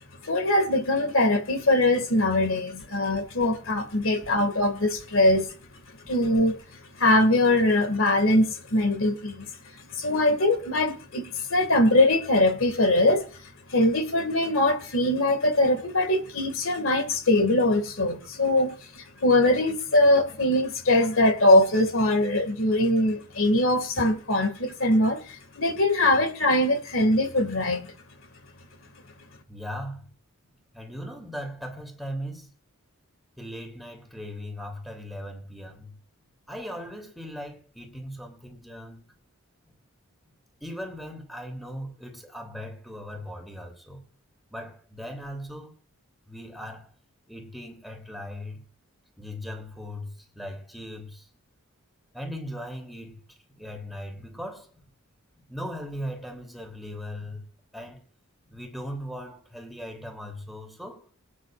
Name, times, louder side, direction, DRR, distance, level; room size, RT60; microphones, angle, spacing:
voice 1, 0.2-5.5 6.1-6.6 7.0-13.4 13.7-27.9, left 1 dB, 65° left, 2.1 m, -22 dB
voice 2, 29.5-30.1 30.7-32.5 33.4-36.0 36.5-39.0 40.2-40.3 40.6-44.0 44.5-45.7 46.3-46.9 47.3-48.6 49.2-51.3 52.1-54.9 55.4-57.4 57.7-58.0 58.4-61.1, equal, ahead, 3.2 m, -38 dB
25.0 x 9.8 x 2.5 m
head